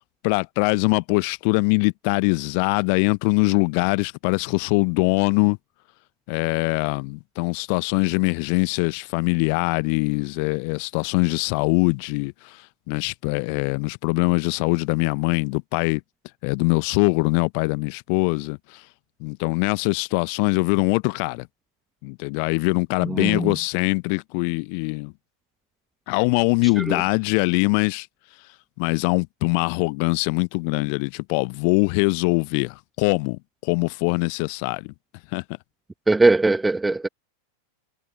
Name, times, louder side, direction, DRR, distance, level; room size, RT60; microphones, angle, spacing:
voice 1, 0.2-5.6 6.3-12.6 12.9-16.0 16.4-18.8 19.2-21.5 22.0-25.1 26.1-28.1 28.8-34.9 35.3-35.4, left 37 dB, 45° left, 0.6 m, -22 dB
voice 2, 23.0-23.5 26.8-27.0 36.1-37.1, right 2 dB, 10° right, 1.0 m, -20 dB
figure-of-eight pair, 90°, 0 cm